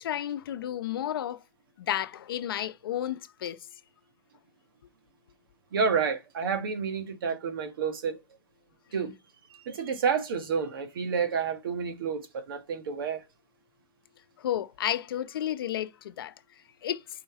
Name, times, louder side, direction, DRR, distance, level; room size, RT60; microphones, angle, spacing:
voice 1, 0.0-1.4 1.8-3.7 14.4-16.3 16.8-17.0, left 11 dB, 80° left, 0.7 m, -32 dB
voice 2, 5.7-8.2 8.9-9.1 9.6-13.2, right 6 dB, 75° right, 1.4 m, -29 dB
5.6 x 3.9 x 4.6 m
supercardioid pair, 165°, 12 cm